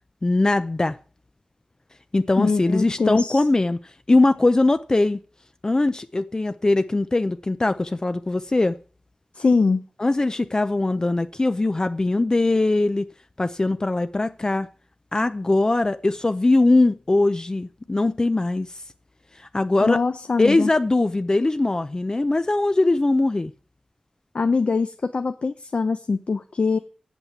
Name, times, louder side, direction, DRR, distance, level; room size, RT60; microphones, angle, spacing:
voice 1, 0.2-1.0 2.1-3.8 4.1-5.2 5.6-8.8 10.0-13.0 13.4-14.7 15.1-18.7 19.4-20.0 20.4-23.5, left 2 dB, 30° left, 0.5 m, -21 dB
voice 2, 2.4-3.4 9.3-9.8 19.8-20.7 24.3-26.8, left 4 dB, 65° left, 0.8 m, -22 dB
8.4 x 7.3 x 8.0 m
wide cardioid pair, 95°, 2 cm